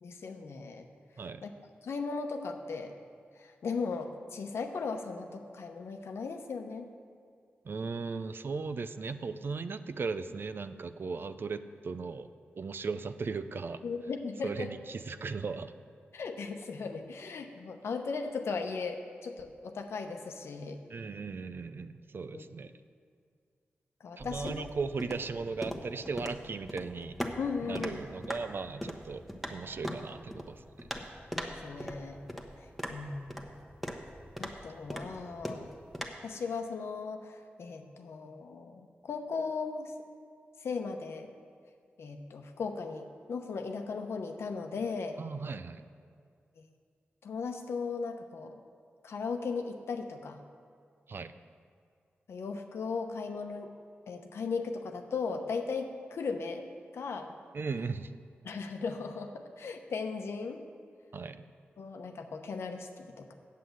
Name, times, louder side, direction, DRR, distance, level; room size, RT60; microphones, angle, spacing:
voice 1, 0.0-0.9 1.4-1.5 1.8-2.9 3.4-6.9 13.8-14.7 16.1-20.8 22.3-22.4 24.0-24.7 27.4-28.0 31.4-32.2 32.9-33.3 34.4-35.7 36.2-39.9 40.6-41.3 42.0-45.2 46.6-46.7 47.2-48.6 49.0-50.4 52.3-53.7 54.1-56.7 56.9-57.4 58.4-60.6 61.8-63.3, left 4 dB, 80° left, 5 dB, 0.9 m, -37 dB
voice 2, 7.6-13.8 14.4-15.7 20.9-22.7 24.2-27.2 27.6-29.2 29.5-30.9 45.2-45.8 51.1-51.3 57.5-58.1 61.1-61.4, right 4 dB, 60° right, 11 dB, 0.5 m, -37 dB
sound 1, 24.2-36.1, equal, ahead, 1.2 m, -41 dB
8.3 x 7.5 x 7.8 m, 2.2 s
cardioid pair, 60°, 4 cm